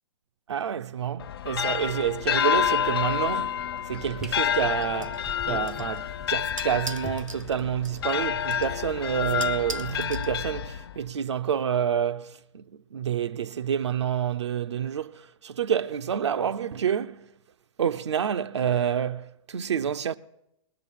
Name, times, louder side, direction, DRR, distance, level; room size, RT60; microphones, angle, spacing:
voice 1, 0.5-5.2 5.5-12.6 12.9-17.3 17.8-20.2, right 8 dB, 60° right, 0.5 m, -28 dB
sound 1, 1.2-11.1, left 9 dB, 50° left, 0.5 m, -29 dB
sound 2, 1.5-7.6, right 2 dB, 5° right, 0.5 m, -45 dB
sound 3, 4.4-10.8, right 3 dB, 85° right, 0.9 m, -43 dB
20.0 x 6.8 x 9.8 m
figure-of-eight pair, 115°, 17 cm